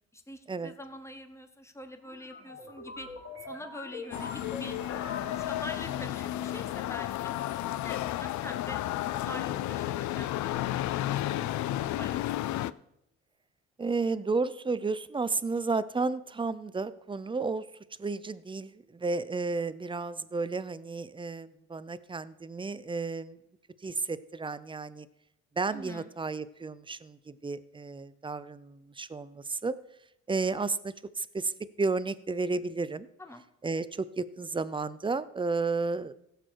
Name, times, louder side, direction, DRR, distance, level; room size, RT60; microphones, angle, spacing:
voice 1, 0.1-3.1 3.4-4.8 5.3-7.3 7.8-8.8 9.1-12.7 25.7-26.1 33.2-33.4, left 1 dB, 10° left, 8 dB, 1.3 m, -45 dB
sound 1, 2.0-6.2, left 4 dB, 50° left, 3.6 m, -43 dB
sound 2, 4.1-12.7, left 13 dB, 70° left, 0.5 m, -32 dB
voice 2, 13.8-17.7 18.0-23.4 23.8-25.1 25.6-29.8 30.3-31.5 31.8-33.1 33.6-36.1, right 4 dB, 15° right, 15 dB, 0.5 m, -32 dB
16.0 x 6.7 x 4.6 m, 0.82 s
cardioid pair, 90°, 30 cm